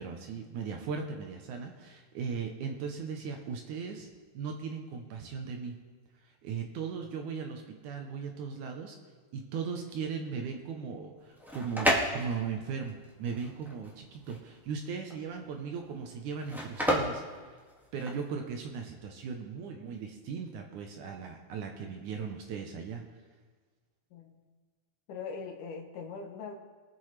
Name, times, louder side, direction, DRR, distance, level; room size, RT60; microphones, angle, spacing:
voice 1, 0.0-4.1 4.3-5.8 6.2-9.0 9.3-17.4 17.9-23.0, right 6 dB, 70° right, 3 dB, 2.1 m, -38 dB
sound 1, 11.2-18.3, equal, ahead, 0.5 m, -32 dB
voice 2, 25.1-26.6, left 5 dB, 70° left, 4 dB, 2.4 m, -41 dB
23.0 x 7.7 x 3.3 m, 1.5 s
omnidirectional pair, 4.1 m